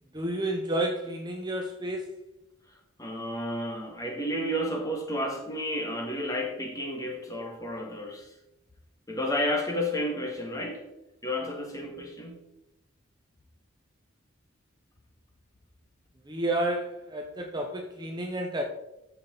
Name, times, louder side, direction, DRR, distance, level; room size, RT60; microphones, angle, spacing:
voice 1, 0.1-2.1 16.3-18.6, right 1 dB, 20° right, 2 dB, 0.9 m, -30 dB
voice 2, 2.7-8.3 9.1-10.9 11.2-12.4, equal, 15° left, 1 dB, 2.0 m, -32 dB
13.5 x 5.9 x 4.0 m, 0.93 s
head